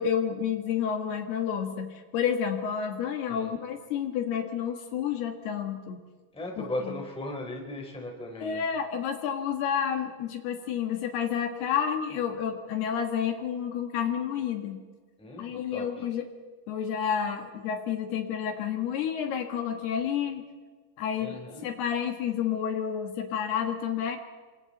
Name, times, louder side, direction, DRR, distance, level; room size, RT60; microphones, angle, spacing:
voice 1, 0.0-6.0 6.6-6.9 8.4-14.8 15.4-16.2 16.7-20.4 21.0-24.2, left 8 dB, 70° left, 5 dB, 3.6 m, -30 dB
voice 2, 6.3-8.6 15.2-15.8 21.2-21.6, left 1 dB, ahead, 1 dB, 2.8 m, -37 dB
29.0 x 24.0 x 4.2 m, 1.4 s
omnidirectional pair, 5.1 m